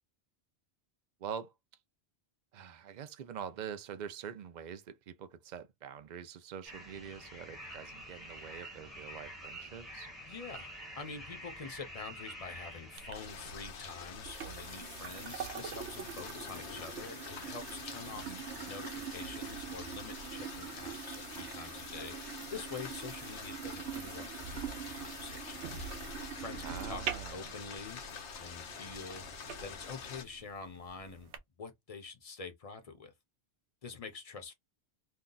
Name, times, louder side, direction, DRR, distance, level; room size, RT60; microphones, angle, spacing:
voice 1, 1.2-1.5 2.5-10.1 18.1-18.4 26.6-27.6, right 8 dB, 55° right, 0.5 m, -45 dB
sound 1, 6.7-13.1, equal, ahead, 0.9 m, -47 dB
voice 2, 10.2-10.7 11.0-25.8 26.4-27.0 27.3-29.2 29.6-31.3 31.6-33.1 33.8-34.5, left 4 dB, 40° left, 0.7 m, -46 dB
sound 2, 13.0-31.4, right 8 dB, 85° right, 0.9 m, -44 dB
sound 3, 13.1-30.2, left 6 dB, 85° left, 1.1 m, -46 dB
2.7 x 2.2 x 3.8 m
omnidirectional pair, 1.1 m